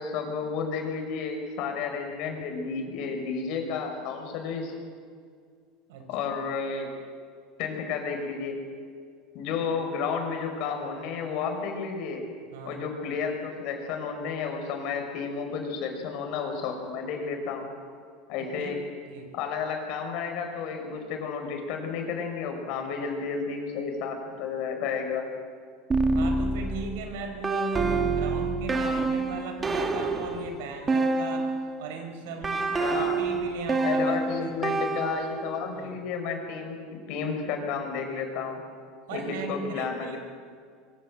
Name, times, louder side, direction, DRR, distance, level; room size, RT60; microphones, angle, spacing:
voice 1, 0.0-4.7 6.1-6.9 7.6-8.6 9.3-12.2 12.6-17.7 18.3-18.8 19.3-25.3 32.8-33.2 33.8-38.6 39.1-40.2, left 5 dB, 55° left, 4 dB, 5.8 m, -32 dB
voice 2, 5.9-6.3 12.5-12.8 18.4-18.8 19.1-19.3 26.0-31.5 31.8-34.8 35.7-36.0 39.1-40.2, right 4 dB, 85° right, 5 dB, 4.9 m, -37 dB
sound 1, 25.9-31.8 32.4-35.6, right 3 dB, 15° right, 1.9 m, -27 dB
25.0 x 24.0 x 7.8 m, 2.1 s
supercardioid pair, 155°, 0 cm